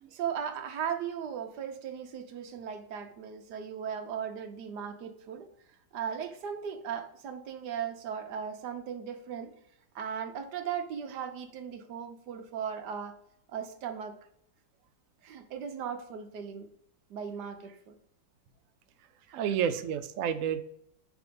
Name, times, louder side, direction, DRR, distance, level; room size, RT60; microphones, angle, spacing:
voice 1, 0.1-5.5 5.9-9.5 9.9-13.2 13.5-14.1 15.2-16.7 17.1-17.9 19.3-19.4, right 7 dB, 65° right, 6 dB, 1.3 m, -37 dB
voice 2, 19.3-20.6, right 8 dB, 85° right, 9 dB, 0.7 m, -30 dB
5.3 x 4.8 x 5.1 m, 0.71 s
omnidirectional pair, 2.0 m